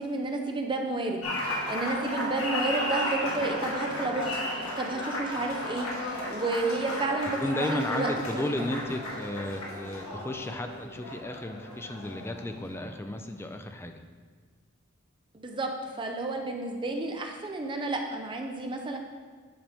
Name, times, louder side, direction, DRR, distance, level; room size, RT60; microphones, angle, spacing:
voice 1, 0.0-8.1 8.3-8.5 15.4-15.7 16.0-19.0, right 2 dB, 25° right, 3 dB, 0.7 m, -31 dB
Applause, 1.2-13.0, left 1 dB, 85° left, 1.5 m, -34 dB
voice 2, 7.4-14.0, left 1 dB, 10° left, 6 dB, 0.4 m, -34 dB
8.7 x 5.4 x 3.5 m, 1.5 s
head